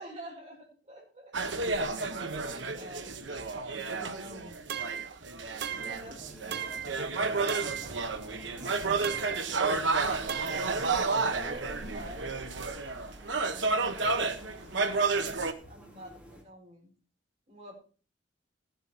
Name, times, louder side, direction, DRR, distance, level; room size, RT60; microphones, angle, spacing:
voice 1, 0.0-4.7 5.7-12.8 13.3-16.9 17.5-17.7, equal, 35° right, -2 dB, 5.1 m, -49 dB
sound 1, 1.3-15.5, right 4 dB, 75° right, 1.2 m, -31 dB
sound 2, 4.7-5.1 5.6-6.1 6.5-7.0 7.5-7.9 9.0-9.5 10.3-10.7, right 8 dB, 55° right, 0.6 m, -36 dB
sound 3, 5.5-16.4, equal, 10° right, 2.9 m, -52 dB
15.5 x 8.0 x 4.2 m, 0.37 s
head